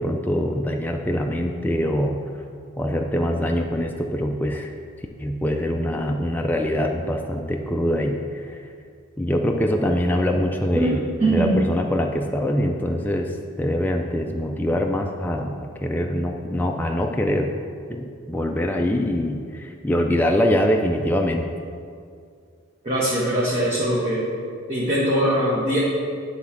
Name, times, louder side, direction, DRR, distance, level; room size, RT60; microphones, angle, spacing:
voice 1, 0.0-2.2 2.8-4.7 5.2-8.6 9.2-17.5 17.9-21.5, equal, 10° left, 2 dB, 0.3 m, -24 dB
voice 2, 11.2-11.5 22.8-24.3 24.7-25.8, right 1 dB, 30° right, -8 dB, 1.2 m, -21 dB
9.4 x 3.5 x 5.8 m, 2.3 s
head